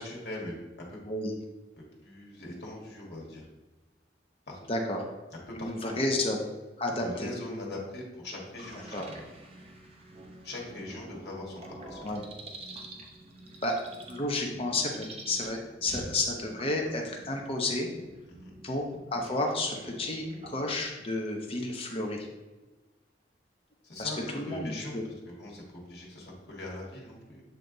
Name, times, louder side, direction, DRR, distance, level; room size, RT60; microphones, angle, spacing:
voice 1, 0.0-1.0 1.8-3.5 4.5-4.8 5.3-6.0 7.0-9.3 10.4-12.2 18.3-18.6 23.8-27.4, left 1 dB, 65° left, -2 dB, 1.7 m, -41 dB
voice 2, 5.6-6.4 6.8-7.3 8.9-9.0 12.0-12.2 13.6-13.8 14.1-17.9 18.6-22.3 24.0-25.0, left 2 dB, 30° left, 1 dB, 0.7 m, -31 dB
sound 1, 8.6-20.8, right 1 dB, 35° right, 0.8 m, -47 dB
7.9 x 3.3 x 3.9 m, 1.2 s
head